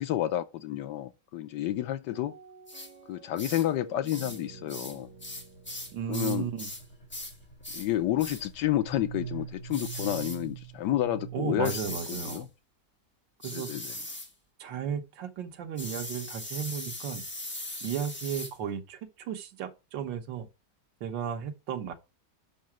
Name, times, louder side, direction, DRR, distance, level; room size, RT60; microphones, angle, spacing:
voice 1, 0.0-2.4 3.1-5.1 6.1-6.5 7.7-11.8 12.1-12.5 13.5-13.9, left 13 dB, 75° left, 1.3 m, -30 dB
sound 1, 2.1-7.2, right 2 dB, 60° right, 1.9 m, -51 dB
sound 2, 2.7-2.9 3.4-3.7 4.1-4.4 4.7-6.8 7.1-7.4 7.6-7.9 8.2-8.4 9.7-10.4 11.6-12.4 13.4-14.3 15.8-18.5, left 1 dB, 10° left, 0.8 m, -39 dB
sound 3, 4.2-11.9, right 8 dB, 40° left, 2.7 m, -45 dB
voice 2, 5.9-6.7 11.3-12.5 13.4-13.7 14.6-17.2 17.8-20.5 21.0-21.9, right 8 dB, 85° right, 1.7 m, -34 dB
5.7 x 5.3 x 5.9 m
omnidirectional pair, 1.9 m